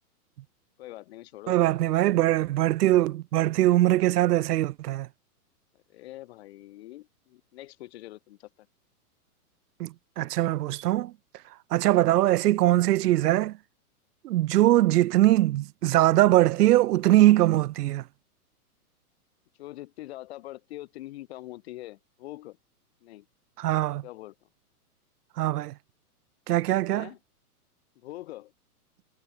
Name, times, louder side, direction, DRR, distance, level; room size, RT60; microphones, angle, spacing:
voice 1, 0.8-1.6 5.7-8.7 19.6-22.6 23.0-23.3 24.0-24.5 26.9-27.2 28.0-28.5, left 16 dB, 45° left, 1.0 m, -43 dB
voice 2, 1.5-5.1 9.8-11.1 11.7-13.6 14.2-18.0 23.6-24.0 25.4-25.7 26.5-27.1, right 15 dB, 85° right, 0.6 m, -22 dB
hypercardioid pair, 155°, 46 cm